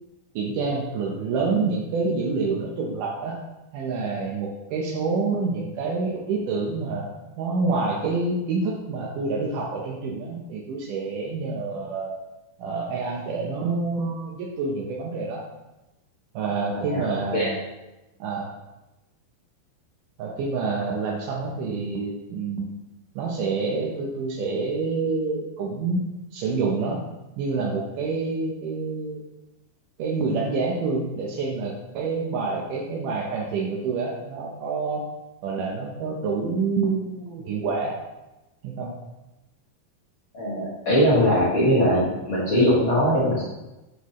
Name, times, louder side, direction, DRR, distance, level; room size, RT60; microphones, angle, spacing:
voice 1, 0.4-3.4 3.7-7.1 7.4-12.2 12.6-15.4 16.3-17.6 18.2-18.5 20.2-22.7 23.2-26.0 26.3-27.1 27.4-29.2 30.0-35.0 35.4-38.0 38.6-39.0, right 4 dB, 80° right, -2 dB, 1.8 m, -27 dB
voice 2, 16.7-17.0 17.3-17.5 40.3-43.4, equal, 65° left, -8 dB, 1.2 m, -21 dB
8.1 x 6.0 x 3.1 m, 1.0 s
omnidirectional pair, 4.9 m